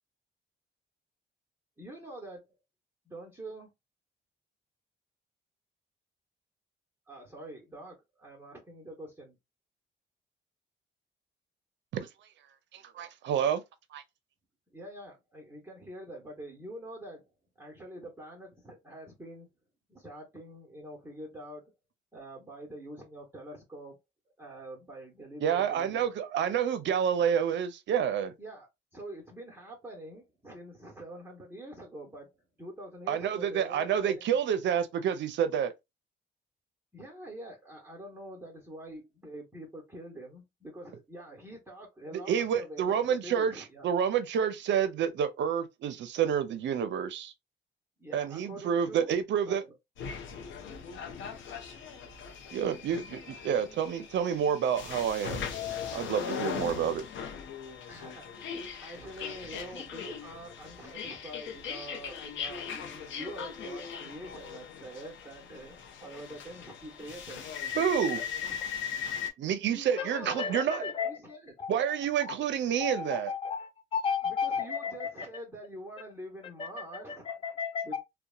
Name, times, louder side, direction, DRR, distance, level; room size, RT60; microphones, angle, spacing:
voice 1, 1.8-2.5 3.0-3.7 7.1-9.4 14.7-17.3 17.6-19.5 19.9-21.7 22.1-24.0 24.4-26.1 28.4-28.7 28.9-32.3 32.6-34.4 36.9-43.9 48.0-49.1 49.5-49.7 57.9-67.4 68.1-68.6 69.6-71.5 74.2-77.3 77.8-78.0, right 1 dB, 10° right, 0.9 m, -45 dB
voice 2, 12.7-13.6 13.9-14.0 25.4-28.3 33.1-35.7 42.3-47.3 48.1-49.6 52.5-55.5 55.9-57.0 67.7-68.2 69.4-70.8 71.7-73.3, right 8 dB, 70° right, 0.5 m, -29 dB
sound 1, 50.0-69.3, left 7 dB, 75° left, 0.6 m, -39 dB
voice 3, 70.0-71.1 71.6-71.7 72.8-75.1 76.6-78.0, left 6 dB, 25° left, 0.5 m, -33 dB
2.7 x 2.1 x 2.3 m
cardioid pair, 90°, 20 cm